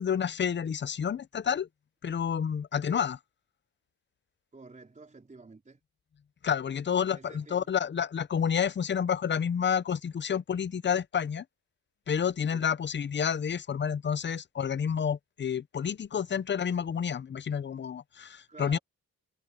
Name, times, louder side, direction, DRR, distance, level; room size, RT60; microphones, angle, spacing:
voice 1, 0.0-1.7 2.0-3.2 6.4-11.4 12.1-18.8, left 7 dB, 35° left, 0.5 m, -29 dB
voice 2, 4.5-5.8 7.1-7.7 12.5-12.7 18.5-18.8, right 3 dB, 20° right, 4.1 m, -50 dB
wide cardioid pair, 130°, 34 cm